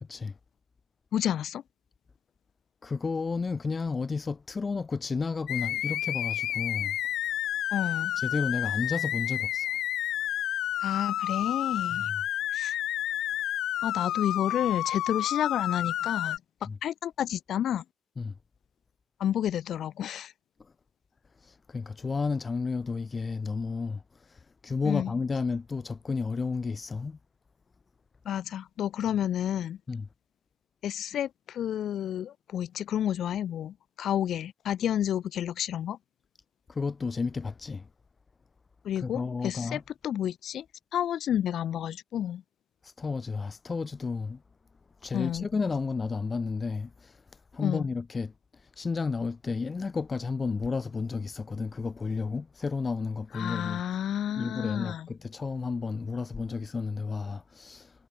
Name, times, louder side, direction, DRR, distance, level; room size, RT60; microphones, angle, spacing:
voice 1, 1.1-1.6 7.7-8.2 10.8-12.1 12.5-12.8 13.8-17.8 19.2-20.3 24.8-25.1 28.3-29.8 30.8-36.0 38.8-40.6 40.9-42.4 45.1-45.5 47.6-47.8 53.3-55.1, left 10 dB, 70° left, 5.7 m, -30 dB
voice 2, 2.8-7.0 8.2-9.7 12.0-12.2 16.7-16.8 18.2-18.3 21.4-24.0 24.3-27.2 29.9-30.1 36.7-37.9 39.0-39.8 42.8-44.4 45.0-47.2 47.5-48.3 48.8-53.8 54.4-57.9, left 4 dB, 30° left, 4.5 m, -32 dB
sound 1, 5.5-16.4, left 12 dB, 85° left, 2.7 m, -30 dB
cardioid pair, 125°, 0 cm